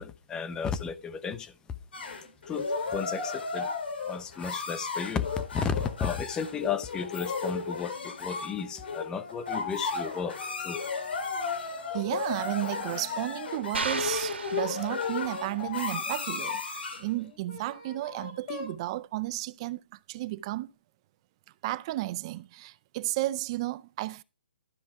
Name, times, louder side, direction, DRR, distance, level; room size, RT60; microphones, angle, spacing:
voice 1, 0.0-1.5 2.5-3.7 4.0-10.8 11.5-12.0, left 6 dB, 10° left, 0.9 m, -34 dB
sound 1, 1.9-17.1, left 4 dB, 70° left, 3.6 m, -34 dB
sound 2, 7.0-7.5 7.9-12.0 12.4-14.0 14.7-16.3 17.1-18.8, left 5 dB, 35° left, 3.8 m, -46 dB
voice 2, 11.5-20.7 21.6-24.2, right 17 dB, 30° right, 0.5 m, -33 dB
sound 3, 13.7-15.5, right 5 dB, 90° right, 1.8 m, -35 dB
12.5 x 7.1 x 4.7 m
hypercardioid pair, 155°, 6 cm